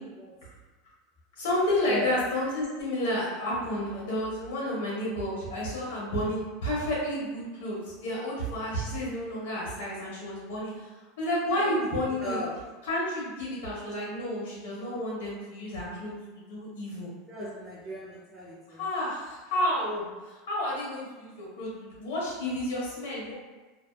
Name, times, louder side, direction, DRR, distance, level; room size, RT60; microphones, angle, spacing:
voice 1, 1.4-10.9 11.2-12.4 12.8-17.1 18.7-23.3, left 1 dB, 90° left, -6 dB, 1.1 m, -31 dB
voice 2, 11.5-12.6 17.3-18.8, left 1 dB, 10° right, -10 dB, 0.4 m, -36 dB
2.7 x 2.3 x 2.2 m, 1.2 s
supercardioid pair, 175°, 0 cm